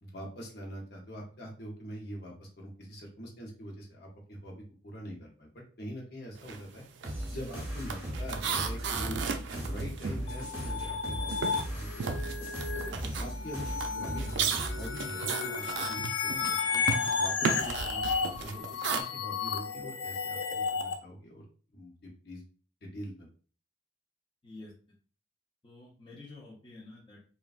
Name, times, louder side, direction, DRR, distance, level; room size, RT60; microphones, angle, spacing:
voice 1, 0.0-4.5 4.8-5.5 5.8-6.8 7.3-9.2 9.5-12.3 13.2-16.8 17.1-21.4 21.7-22.4 22.8-23.3, equal, 55° left, 0 dB, 0.8 m, -43 dB
sound 1, 6.4-6.7 6.9-11.0 11.3-19.0, right 6 dB, 65° right, 0.4 m, -35 dB
sound 2, 7.0-14.9, right 1 dB, 10° right, 0.8 m, -37 dB
sound 3, 10.3-20.9, left 5 dB, 80° left, 0.4 m, -33 dB
voice 2, 25.6-27.2, left 2 dB, 25° left, -4 dB, 0.5 m, -50 dB
3.2 x 2.2 x 2.4 m, 0.40 s
head